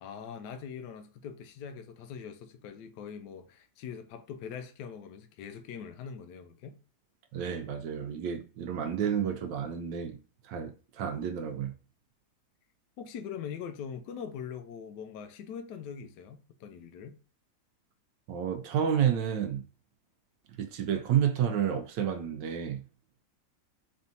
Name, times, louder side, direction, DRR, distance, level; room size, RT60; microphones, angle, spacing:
voice 1, 0.0-6.8 13.0-17.2, left 7 dB, 70° left, 1.2 m, -42 dB
voice 2, 7.3-10.2 10.4-11.7 18.3-19.6 20.6-22.8, right 8 dB, 75° right, 1.3 m, -30 dB
4.3 x 3.5 x 2.7 m
omnidirectional pair, 2.0 m